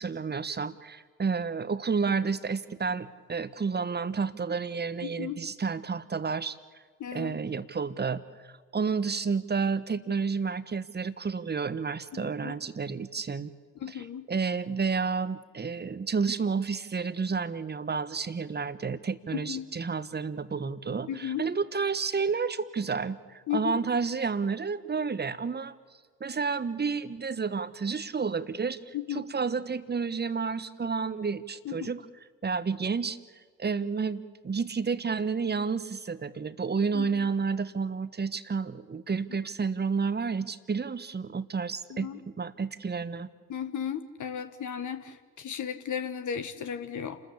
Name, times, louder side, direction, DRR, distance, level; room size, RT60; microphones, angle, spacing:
voice 1, 0.0-6.6 7.1-13.5 13.9-25.7 26.2-32.0 32.4-33.2 33.6-43.3, right 5 dB, 25° right, 14 dB, 1.3 m, -30 dB
voice 2, 5.0-5.4 7.0-7.4 12.1-12.6 13.8-14.3 19.3-19.7 21.1-21.5 23.5-23.8 28.9-29.2 31.6-31.9 36.9-37.1 41.9-42.2 43.5-47.2, left 9 dB, 50° left, 9 dB, 1.5 m, -35 dB
29.0 x 14.0 x 8.5 m, 1.5 s
figure-of-eight pair, 45°, 39 cm